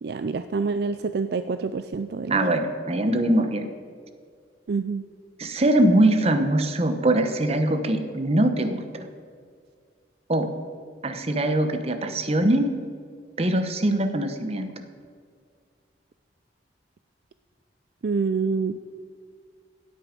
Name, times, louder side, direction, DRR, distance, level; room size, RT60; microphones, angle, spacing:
voice 1, 0.0-2.4 4.7-5.0 18.0-18.8, right 4 dB, 60° right, 10 dB, 0.4 m, -27 dB
voice 2, 2.3-3.7 5.4-9.1 10.3-10.5 11.0-12.7 13.4-14.7, right 1 dB, 35° right, 8 dB, 1.0 m, -22 dB
16.5 x 9.3 x 5.2 m, 2.1 s
head